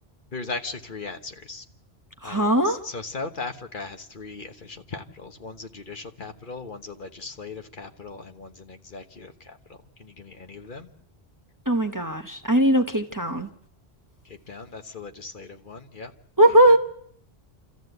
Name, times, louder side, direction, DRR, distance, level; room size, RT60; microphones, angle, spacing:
voice 1, 0.3-1.6 2.2-10.9 14.2-16.1 16.5-16.8, left 3 dB, 50° left, 1.3 m, -38 dB
voice 2, 2.2-2.8 11.7-13.5 16.4-16.8, right 1 dB, 20° right, 1.0 m, -19 dB
29.0 x 14.0 x 8.0 m
omnidirectional pair, 1.1 m